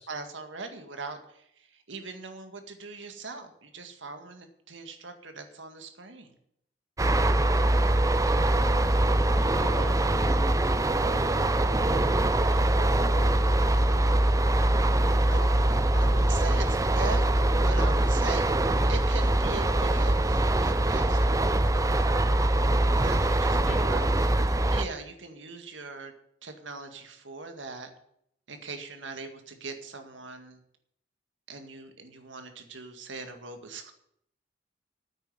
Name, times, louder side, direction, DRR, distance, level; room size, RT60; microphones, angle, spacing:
voice 1, 0.1-6.3 15.3-15.5 15.9-24.1 24.4-26.1 26.4-27.9 28.5-30.6 31.5-33.9, right 4 dB, 90° right, 6 dB, 1.9 m, -41 dB
sound 1, 7.0-24.8, right 1 dB, 20° right, 0.6 m, -23 dB
voice 2, 9.4-10.1 10.8-13.6 23.6-24.3, equal, 65° left, 0 dB, 3.4 m, -43 dB
9.5 x 8.9 x 8.0 m, 0.72 s
head